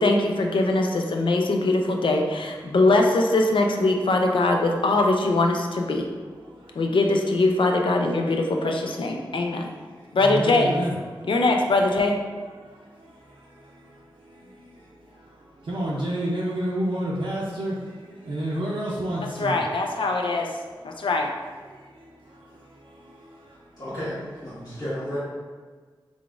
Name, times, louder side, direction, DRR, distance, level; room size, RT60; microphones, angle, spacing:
voice 1, 0.0-6.1 6.8-9.7 10.1-10.8 11.3-12.2 19.4-20.5 20.8-21.3, left 2 dB, 75° left, 2 dB, 0.5 m, -22 dB
voice 2, 10.2-10.9 15.7-17.7 18.3-19.6, right 1 dB, 75° right, -6 dB, 0.5 m, -28 dB
voice 3, 23.8-25.2, equal, 50° left, -11 dB, 1.2 m, -32 dB
3.8 x 3.4 x 2.4 m, 1.5 s
cardioid pair, 45°, 9 cm